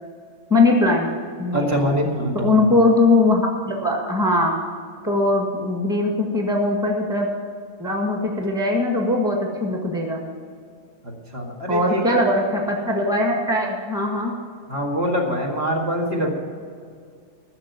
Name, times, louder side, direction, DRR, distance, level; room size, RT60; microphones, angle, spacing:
voice 1, 0.5-1.1 1.4-1.7 2.3-4.5 5.0-7.3 7.8-10.2 11.7-14.4, left 2 dB, 5° right, 0 dB, 1.6 m, -20 dB
voice 2, 1.5-2.7 11.0-12.0 14.7-16.3, equal, 50° right, -1 dB, 2.2 m, -24 dB
14.5 x 6.7 x 8.2 m, 2.2 s
omnidirectional pair, 1.4 m